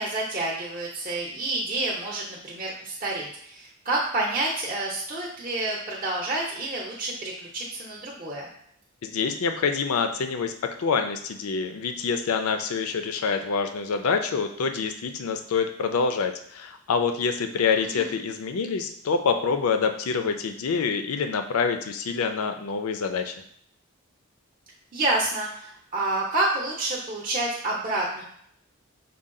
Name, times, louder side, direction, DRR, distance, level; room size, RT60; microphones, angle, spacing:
voice 1, 0.0-8.5 17.8-18.1 24.9-28.2, right 2 dB, 40° right, -3 dB, 0.7 m, -29 dB
voice 2, 9.0-10.5 10.8-23.3, left 5 dB, 90° left, 7 dB, 0.4 m, -26 dB
5.4 x 2.3 x 3.7 m, 0.67 s
head